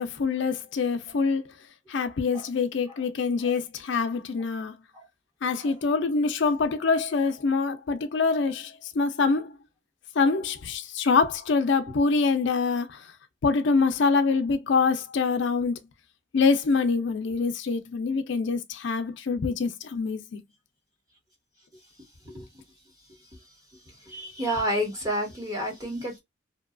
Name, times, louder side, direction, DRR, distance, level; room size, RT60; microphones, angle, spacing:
voice 1, 0.0-1.4 1.9-4.7 5.4-9.5 10.2-13.0 13.4-15.7 16.3-20.4, left 4 dB, 60° left, 0.4 m, -25 dB
voice 2, 24.1-26.2, equal, 20° right, 1.0 m, -29 dB
2.8 x 2.2 x 2.3 m
head